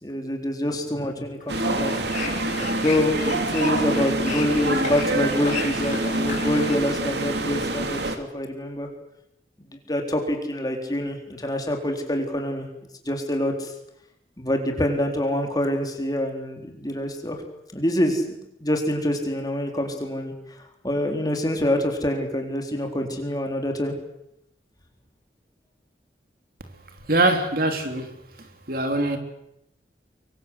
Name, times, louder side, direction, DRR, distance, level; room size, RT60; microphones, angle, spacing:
voice 1, 0.0-1.9 2.8-8.9 9.9-12.7 13.0-13.7 14.4-17.4 17.7-18.4 18.6-20.3 20.8-23.9, left 1 dB, 20° left, 4.2 m, -26 dB
sound 1, 1.4-6.8, left 4 dB, 45° left, 5.5 m, -35 dB
sound 2, 1.5-8.2, right 2 dB, 75° right, 2.9 m, -26 dB
voice 2, 27.1-28.1 28.4-29.2, right 2 dB, 55° right, 3.3 m, -23 dB
25.0 x 24.0 x 8.2 m
head